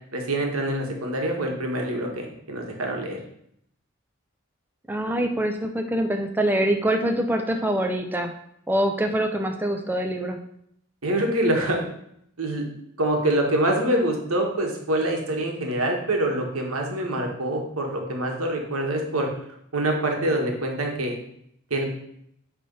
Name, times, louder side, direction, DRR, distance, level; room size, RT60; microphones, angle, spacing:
voice 1, 0.1-3.2 11.0-11.8 12.4-12.7 13.0-19.3 19.7-21.2 21.7-21.9, right 1 dB, 90° right, 1 dB, 1.6 m, -25 dB
voice 2, 4.9-8.3 8.7-10.4, right 1 dB, 10° right, 4 dB, 0.5 m, -24 dB
8.9 x 3.4 x 5.4 m, 0.72 s
head